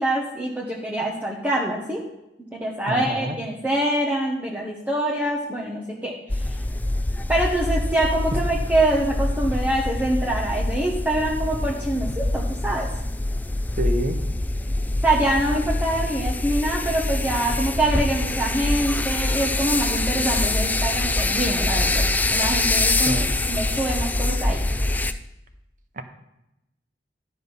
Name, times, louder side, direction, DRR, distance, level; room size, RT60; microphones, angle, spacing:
voice 1, 0.0-2.0 2.5-6.1 6.5-6.6 7.3-12.9 15.0-22.0 22.3-24.6, right 1 dB, 10° right, -4 dB, 1.1 m, -25 dB
voice 2, 2.9-3.4 13.8-14.2 23.1-23.3 25.9-26.0, right 1 dB, 50° right, 8 dB, 1.0 m, -27 dB
sound 1, 6.3-25.1, left 2 dB, 10° left, 0.4 m, -24 dB
11.5 x 6.1 x 5.5 m, 0.90 s
head